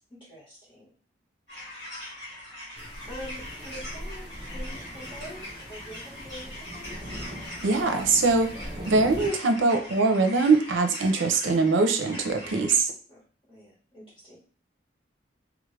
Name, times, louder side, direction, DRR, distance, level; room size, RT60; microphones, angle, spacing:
voice 1, 0.1-0.9 1.9-2.2 3.1-7.2 13.1-13.2 13.5-14.4, equal, 25° left, -6 dB, 1.5 m, -45 dB
sound 1, 1.5-12.7, left 1 dB, 65° left, 1.6 m, -42 dB
sound 2, 2.8-9.3, equal, 25° right, 0.8 m, -40 dB
voice 2, 7.6-8.5 8.9-12.9, right 3 dB, 80° right, 7 dB, 0.5 m, -22 dB
3.5 x 2.4 x 3.3 m, 0.41 s
head